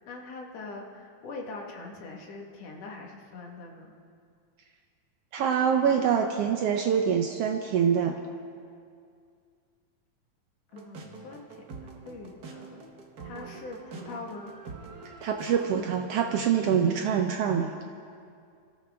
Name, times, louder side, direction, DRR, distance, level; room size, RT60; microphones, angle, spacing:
voice 1, 0.0-3.9 10.7-12.8 13.2-14.5, left 3 dB, 55° left, 0 dB, 2.6 m, -42 dB
voice 2, 5.3-8.1 15.2-17.7, right 7 dB, 85° right, 4 dB, 1.3 m, -25 dB
sound 1, 10.7-15.7, right 4 dB, 60° right, 1.0 m, -45 dB
25.5 x 13.5 x 3.6 m, 2.3 s
omnidirectional pair, 3.6 m